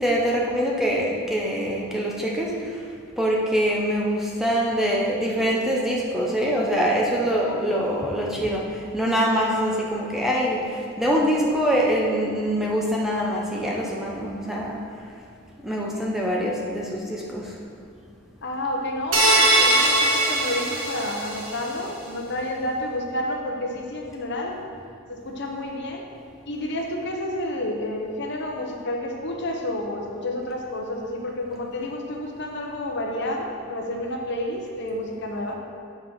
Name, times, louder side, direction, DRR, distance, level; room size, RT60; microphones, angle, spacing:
voice 1, 0.0-2.5 3.2-8.6 8.9-14.8 15.6-17.5, equal, ahead, -3 dB, 0.7 m, -24 dB
voice 2, 7.5-7.9 18.4-24.6 25.1-26.0 26.4-35.5, left 1 dB, 50° left, 1 dB, 0.9 m, -30 dB
sound 1, 19.1-21.6, right 1 dB, 60° right, 1.7 m, -20 dB
8.7 x 5.0 x 5.6 m, 2.3 s
head